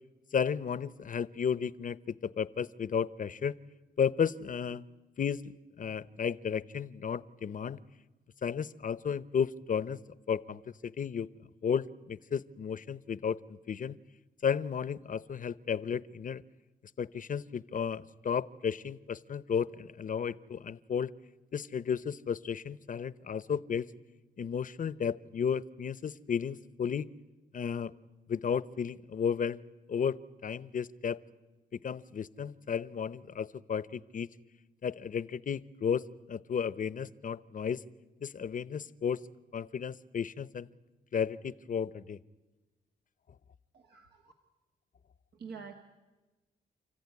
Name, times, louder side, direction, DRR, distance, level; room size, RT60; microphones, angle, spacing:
voice 1, 0.3-3.5 4.0-4.9 5.2-7.8 8.4-10.0 10.3-11.3 11.6-14.0 14.4-16.4 17.0-21.1 21.5-23.9 24.4-27.1 27.5-27.9 28.3-29.6 29.9-30.2 30.4-31.2 31.7-34.3 34.8-37.8 38.2-39.2 39.5-40.7 41.1-42.2, left 7 dB, 55° left, 18 dB, 0.8 m, -33 dB
voice 2, 43.7-44.3 45.3-45.7, right 5 dB, 80° right, 3 dB, 1.7 m, -47 dB
29.5 x 14.5 x 9.7 m, 1.2 s
cardioid pair, 70°, 17 cm